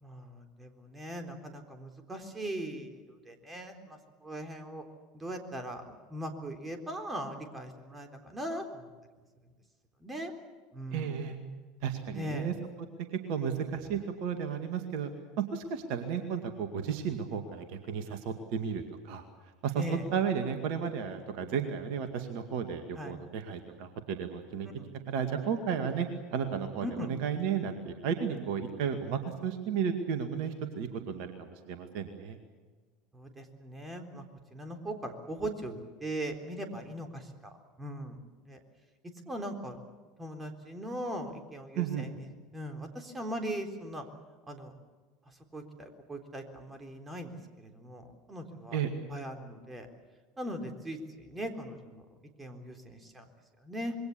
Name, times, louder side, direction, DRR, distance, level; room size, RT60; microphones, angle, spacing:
voice 1, 0.0-3.0 3.3-3.8 4.2-4.8 5.1-8.9 10.0-10.3 10.7-11.2 12.1-12.5 19.8-20.0 23.0-23.1 24.8-24.9 26.8-27.1 33.1-34.2 34.5-37.5 37.8-38.2 38.5-38.6 39.3-39.8 40.2-42.1 42.5-44.0 44.5-44.7 45.5-47.3 47.6-48.8 49.1-49.9 50.4-52.0 52.4-53.2 53.6-53.9, right 1 dB, 15° right, 5 dB, 3.8 m, -39 dB
voice 2, 10.9-11.4 11.8-12.5 13.3-15.1 15.4-19.2 19.6-19.8 20.1-24.7 25.1-32.4 41.8-42.1 48.7-48.9, right 7 dB, 55° right, 7 dB, 2.1 m, -33 dB
26.5 x 22.0 x 7.1 m, 1.4 s
figure-of-eight pair, 75°, 0 cm